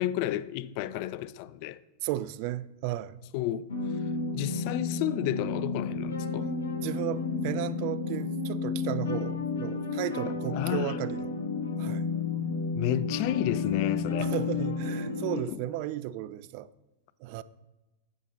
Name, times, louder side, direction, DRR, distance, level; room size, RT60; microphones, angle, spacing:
voice 1, 0.0-1.8 3.3-3.7 4.3-6.5 10.5-11.0 12.7-14.3 15.5-15.6, left 13 dB, 45° left, 0.3 m, -31 dB
voice 2, 2.0-3.2 6.8-11.3 11.8-12.1 14.2-16.7 17.2-17.4, right 14 dB, 45° right, 0.3 m, -34 dB
sound 1, 3.7-15.4, left 4 dB, 65° left, 0.9 m, -32 dB
9.8 x 7.1 x 3.0 m
figure-of-eight pair, 90°, 0 cm